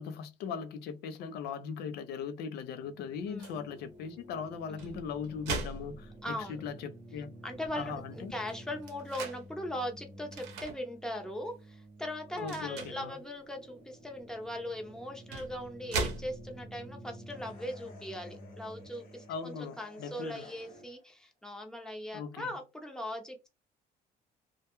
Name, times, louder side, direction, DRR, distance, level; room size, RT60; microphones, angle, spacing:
voice 1, 0.0-7.3 7.8-8.3 12.3-13.1 19.3-20.5 22.1-22.5, left 6 dB, 75° left, 0.5 m, -39 dB
sound 1, 2.8-20.9, right 1 dB, 45° right, 0.9 m, -51 dB
voice 2, 3.3-3.7 4.7-5.0 6.2-6.6 7.4-23.5, left 1 dB, 5° left, 0.6 m, -40 dB
sound 2, 3.4-3.6 4.6-6.6 7.1-7.2 7.5-9.4 10.3-10.8 11.3-11.5 12.4-13.1 14.4-14.5 15.1-16.7, right 4 dB, 85° right, 0.7 m, -39 dB
sound 3, 17.2-21.1, left 4 dB, 55° left, 1.0 m, -56 dB
2.2 x 2.1 x 2.9 m
cardioid pair, 110°, 17 cm